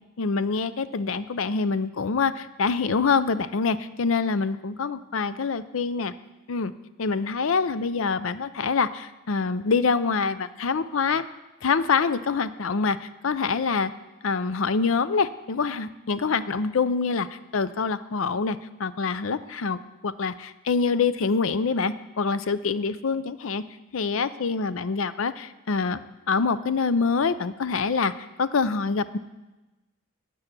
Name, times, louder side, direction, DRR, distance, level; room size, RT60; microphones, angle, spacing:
voice 1, 0.2-6.1 6.5-6.7 7.0-11.2 11.6-13.9 14.2-23.6 23.9-26.0 26.3-28.1 28.4-29.2, left 5 dB, 70° left, 14 dB, 0.5 m, -25 dB
9.8 x 9.0 x 6.0 m, 1.1 s
head